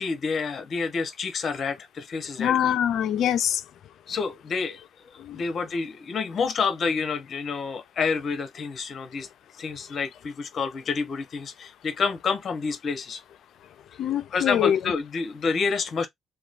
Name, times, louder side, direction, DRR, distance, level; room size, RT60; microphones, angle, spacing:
voice 1, 0.0-2.7 4.1-4.8 5.1-9.3 9.6-13.2 14.3-16.1, left 5 dB, 50° left, 1.1 m, -28 dB
voice 2, 2.4-3.6 5.2-5.4 14.0-14.8, left 10 dB, 75° left, 0.5 m, -24 dB
3.1 x 2.3 x 2.5 m
cardioid pair, 90°, 0 cm